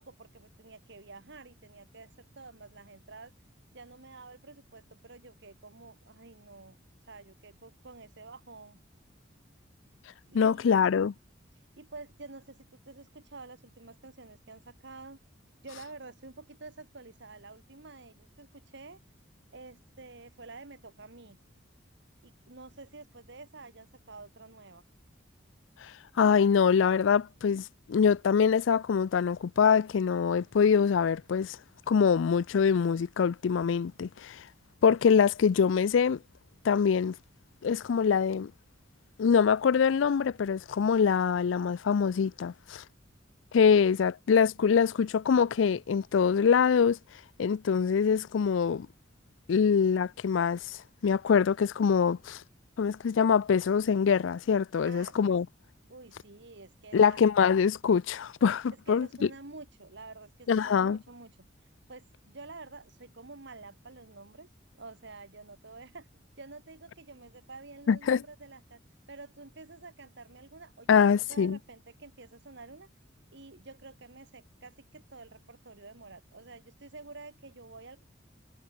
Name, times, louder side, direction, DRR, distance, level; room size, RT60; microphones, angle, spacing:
voice 1, 0.0-3.3 3.7-8.8 10.3-10.9 11.5-15.2 15.6-19.0 19.5-21.4 22.2-24.8 54.8-55.4 55.9-57.2 58.9-61.3 61.6-64.5 64.7-66.1 66.4-68.8 69.1-71.0 71.3-72.9 73.3-78.0, right 3 dB, 65° right, 2.2 m, -49 dB
voice 2, 10.3-11.1 25.8-25.9 26.2-31.6 31.9-34.4 34.8-36.2 36.6-37.1 37.6-38.5 39.2-42.8 43.5-47.0 47.4-48.9 49.5-52.4 52.8-55.5 56.9-59.1 60.5-61.0 67.9-68.2 70.9-71.6, left 6 dB, 75° left, 0.4 m, -24 dB
head